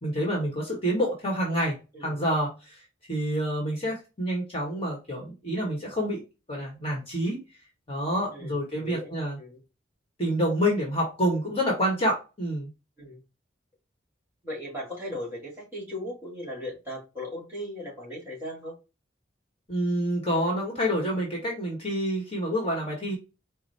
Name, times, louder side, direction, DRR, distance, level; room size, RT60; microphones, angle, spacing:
voice 1, 0.0-2.8 3.1-6.2 6.5-7.4 7.9-9.4 10.2-12.7 19.7-23.2, equal, 30° left, -2 dB, 1.4 m, -28 dB
voice 2, 1.9-2.2 8.3-9.6 13.0-13.2 14.4-18.8, left 1 dB, 10° right, -3 dB, 2.2 m, -38 dB
4.9 x 2.2 x 4.1 m, 0.28 s
head